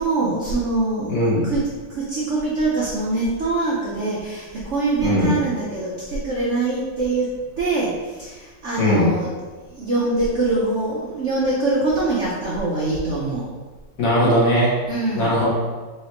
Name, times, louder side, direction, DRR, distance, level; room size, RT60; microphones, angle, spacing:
voice 1, 0.0-7.3 7.6-7.9 8.2-9.3 9.7-13.5 14.9-15.4, right 2 dB, 75° right, -5 dB, 0.6 m, -23 dB
voice 2, 1.1-1.5 5.0-5.4 8.8-9.1 14.0-14.7 15.1-15.5, left 1 dB, 50° left, -6 dB, 1.3 m, -18 dB
4.5 x 3.2 x 2.9 m, 1.3 s
omnidirectional pair, 2.1 m